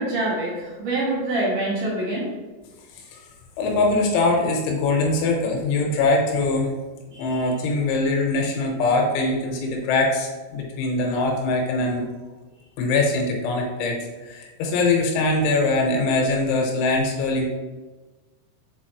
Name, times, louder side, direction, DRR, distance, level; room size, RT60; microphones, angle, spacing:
voice 1, 0.0-2.3 7.1-7.5, right 2 dB, 70° right, -6 dB, 1.9 m, -26 dB
voice 2, 3.6-6.7 7.2-12.1 12.8-14.0 14.2-17.4, left 3 dB, 85° left, 1 dB, 3.3 m, -22 dB
7.0 x 4.7 x 3.0 m, 1.2 s
omnidirectional pair, 5.5 m